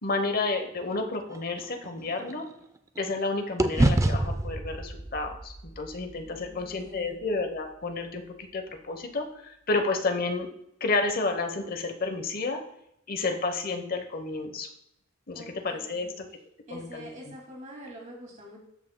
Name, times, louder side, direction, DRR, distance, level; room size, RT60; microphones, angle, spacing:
voice 1, 0.0-2.4 3.0-10.5 10.8-12.6 13.1-14.7 15.3-16.2 16.7-17.3, left 3 dB, 45° left, 5 dB, 1.0 m, -31 dB
sound 1, 0.9-3.2 3.6-7.8, right 1 dB, 15° right, 0.4 m, -30 dB
voice 2, 6.3-7.2 15.3-16.2 16.7-18.6, equal, 40° right, -2 dB, 2.3 m, -45 dB
12.5 x 5.5 x 2.2 m, 0.78 s
head